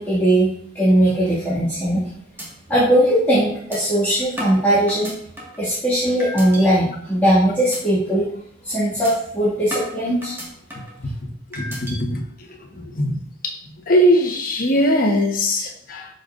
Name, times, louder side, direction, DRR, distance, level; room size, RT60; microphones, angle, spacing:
voice 1, 0.0-2.0 2.7-5.2 5.6-8.3 8.6-10.3, right 1 dB, 10° left, -12 dB, 2.2 m, -19 dB
sound 1, 1.7-2.0 2.4-2.5 2.9-3.0 3.7-3.8 4.4-5.6 6.2-6.6 7.1-7.3 7.7-7.8 8.2-8.4 9.0-9.1 9.7-11.0 11.5-12.0, equal, 10° right, 1.8 m, -33 dB
voice 2, 11.5-12.2 12.8-13.2 13.4-13.5 13.9-16.1, equal, 45° left, 2 dB, 1.2 m, -20 dB
12.5 x 5.5 x 2.6 m, 0.65 s
head